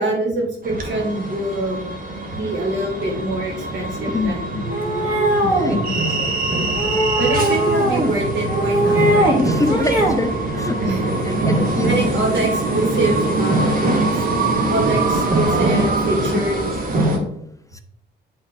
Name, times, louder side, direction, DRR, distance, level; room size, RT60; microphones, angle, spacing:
voice 1, 0.0-1.8 2.3-4.4 7.2-9.4 10.8-11.1 11.9-13.9 14.1-14.2 14.7-16.6, right 2 dB, 65° right, -1 dB, 2.4 m, -24 dB
sound 1, 0.6-17.2, right 2 dB, 45° right, 1.5 m, -22 dB
voice 2, 4.1-4.6 5.4-6.7 9.4-10.8 11.3-11.9 16.9-17.3 17.7-17.8, left 3 dB, 15° left, 9 dB, 0.4 m, -26 dB
sound 2, 4.7-5.8 6.8-8.1 8.5-9.4 9.7-10.2, right 1 dB, 10° right, 1.9 m, -19 dB
8.5 x 3.6 x 3.6 m, 0.72 s
cardioid pair, 90°, 20 cm